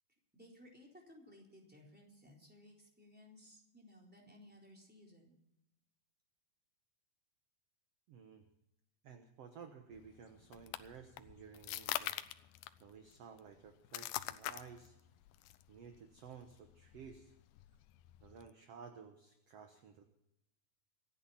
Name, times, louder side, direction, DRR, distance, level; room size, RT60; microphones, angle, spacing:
voice 1, 0.3-5.4, left 1 dB, 5° right, -1 dB, 3.7 m, -59 dB
voice 2, 8.1-8.5 9.0-12.2 12.8-15.0 15.7-17.3 18.2-20.0, right 6 dB, 60° right, 6 dB, 1.8 m, -54 dB
sound 1, 9.9-18.5, left 15 dB, 85° left, 2.5 m, -45 dB
26.0 x 10.0 x 4.3 m, 0.84 s
omnidirectional pair, 4.1 m